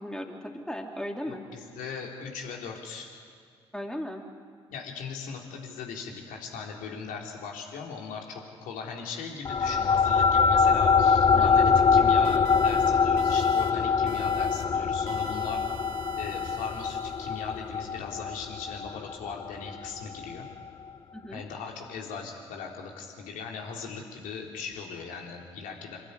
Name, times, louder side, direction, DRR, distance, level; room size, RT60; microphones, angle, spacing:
voice 1, 0.0-1.4 3.7-4.3 11.3-11.7 21.1-21.4, equal, 5° left, 2 dB, 3.5 m, -36 dB
voice 2, 1.3-3.1 4.7-15.6 16.2-20.5 21.3-26.0, left 5 dB, 65° left, 0 dB, 3.9 m, -39 dB
sound 1, 9.4-20.2, left 5 dB, 30° left, 0.5 m, -24 dB
sound 2, 12.2-12.9 13.2-13.7 14.1-14.6 15.1-17.4, right 8 dB, 70° right, 1.3 m, -45 dB
26.5 x 12.5 x 9.8 m, 2.2 s
hypercardioid pair, 45°, 15 cm